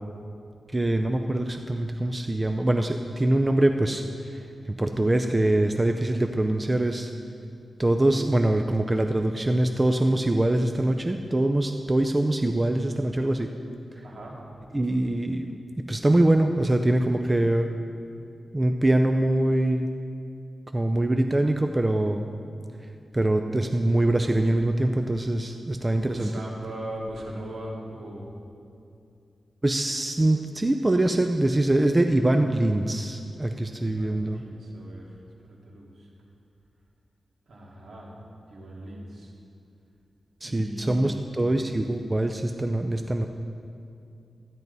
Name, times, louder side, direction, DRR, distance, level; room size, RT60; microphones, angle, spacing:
voice 1, 0.7-7.1 7.8-13.5 14.7-15.5 15.9-17.7 18.5-19.9 20.7-22.3 23.1-26.3 29.6-34.4 40.4-43.3, right 1 dB, 20° right, 5 dB, 0.5 m, -23 dB
voice 2, 14.0-14.4 25.9-28.3 33.7-35.1 35.6-36.1 37.5-38.1 38.5-39.3 40.4-41.3, right 1 dB, 65° right, -3 dB, 2.3 m, -39 dB
13.5 x 10.5 x 4.0 m, 2.6 s
wide cardioid pair, 90°, 0 cm